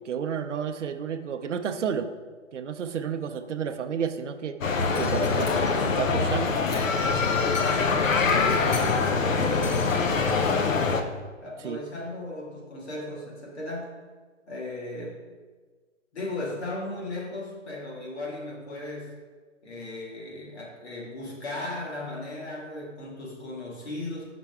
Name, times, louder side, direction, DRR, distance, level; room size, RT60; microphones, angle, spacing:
voice 1, 0.0-2.1 2.5-6.6 11.6-11.8, right 7 dB, 65° right, 8 dB, 0.6 m, -31 dB
sound 1, 4.6-11.0, left 4 dB, 85° left, 0.8 m, -24 dB
sound 2, 5.5-5.6 6.3-8.8 9.0-9.3 9.7-10.9, equal, 20° left, 0.7 m, -49 dB
voice 2, 8.4-10.7 11.4-13.9 14.5-15.2 16.1-19.1 19.6-24.2, left 2 dB, 55° left, -3 dB, 2.0 m, -36 dB
5.8 x 5.8 x 3.5 m, 1.4 s
hypercardioid pair, 170°, 38 cm